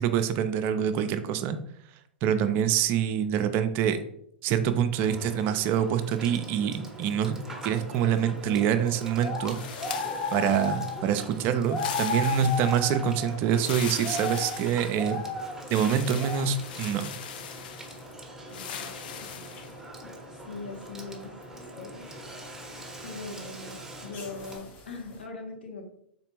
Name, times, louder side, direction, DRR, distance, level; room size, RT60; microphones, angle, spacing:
voice 1, 0.0-1.6 2.2-4.0 4.4-7.4 7.6-9.8 10.3-15.2 15.7-17.1, right 8 dB, 40° right, 9 dB, 0.4 m, -26 dB
voice 2, 2.3-2.7 18.5-19.3 20.4-22.1 23.0-25.9, left 3 dB, 80° left, 2 dB, 0.9 m, -41 dB
Water / Water tap faucet / Sink (filling or washing), 4.9-24.6, right 1 dB, 5° right, 0.8 m, -43 dB
sound 1, 8.6-8.7 9.2-11.0 11.7-13.3 13.8-14.7 14.9-15.7 16.1-16.5 19.6-19.8 23.6-25.1, left 3 dB, 35° left, 0.9 m, -33 dB
sound 2, 9.5-11.0 11.7-13.0 13.5-15.2 15.7-18.1 18.5-19.8, left 8 dB, 60° left, 0.5 m, -40 dB
4.0 x 3.3 x 3.0 m, 0.70 s
figure-of-eight pair, 100°, 6 cm